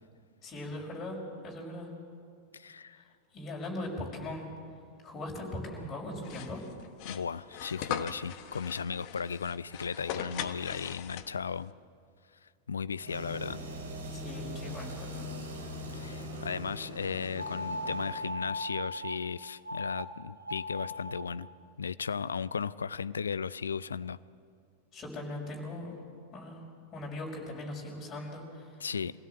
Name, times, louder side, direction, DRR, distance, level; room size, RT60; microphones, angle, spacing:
voice 1, 0.4-1.2 1.4-1.9 2.9-3.1 3.3-4.5 5.0-6.6 14.1-15.3 24.9-26.0 26.3-26.7 26.9-28.9, left 1 dB, 25° left, -2 dB, 5.6 m, -40 dB
voice 2, 2.5-3.0 7.0-11.7 12.7-13.6 15.9-21.5 21.8-24.2 28.8-29.1, left 6 dB, 70° left, 19 dB, 0.5 m, -36 dB
sound 1, 6.2-11.6, left 10 dB, 45° left, 1.1 m, -40 dB
sound 2, 13.0-18.3, equal, 65° right, 3.4 m, -41 dB
sound 3, 17.4-19.2 19.6-20.0 20.4-21.2, left 1 dB, 85° right, 1.2 m, -37 dB
25.5 x 16.5 x 7.8 m, 2.3 s
figure-of-eight pair, 90°, 0 cm